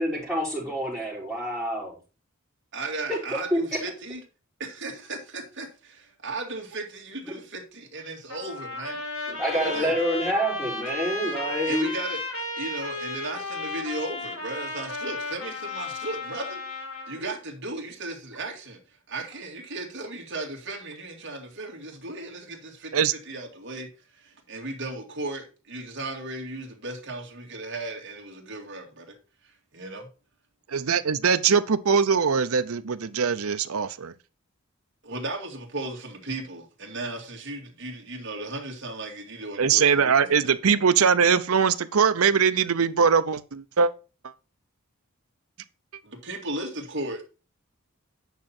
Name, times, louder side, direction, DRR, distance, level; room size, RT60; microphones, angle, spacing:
voice 1, 0.0-1.9 3.1-3.2 3.5-3.6 9.3-11.9 17.1-17.2, equal, ahead, 4.7 m, -27 dB
voice 2, 2.7-4.2 4.6-9.0 9.5-10.0 11.7-12.2 12.6-18.8 19.1-23.9 24.1-29.1 29.7-30.1 35.0-40.6 46.0-47.2, right 2 dB, 55° right, 2.3 m, -36 dB
Trumpet, 8.3-17.2, left 2 dB, 65° left, 2.2 m, -34 dB
voice 3, 30.7-34.1 39.6-43.9, right 6 dB, 80° right, 0.7 m, -21 dB
9.2 x 5.8 x 4.3 m
head